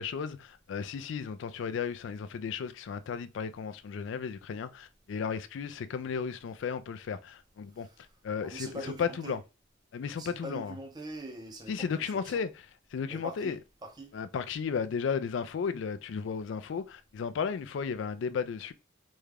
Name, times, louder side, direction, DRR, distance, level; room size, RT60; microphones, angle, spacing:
voice 1, 0.0-7.9 8.2-8.7 9.0-9.4 9.9-10.7 11.7-12.5 12.9-13.6 14.1-18.7, left 6 dB, 60° left, 0.3 m, -34 dB
voice 2, 8.4-9.4 10.2-12.4 13.1-13.6 13.8-14.1, right 1 dB, 20° right, 0.5 m, -43 dB
3.5 x 2.2 x 3.2 m
head